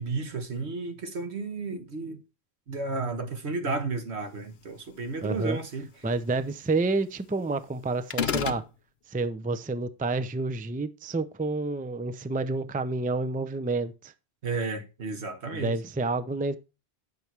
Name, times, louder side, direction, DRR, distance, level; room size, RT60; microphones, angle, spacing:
voice 1, 0.0-2.2 2.7-5.9 14.4-15.7, right 3 dB, 80° right, 1.7 m, -32 dB
voice 2, 5.2-5.6 6.0-8.6 9.1-14.1 15.5-16.6, right 3 dB, 10° right, 0.4 m, -29 dB
sound 1, 8.1-8.7, left 7 dB, 70° left, 1.0 m, -27 dB
9.7 x 7.0 x 4.5 m
omnidirectional pair, 1.1 m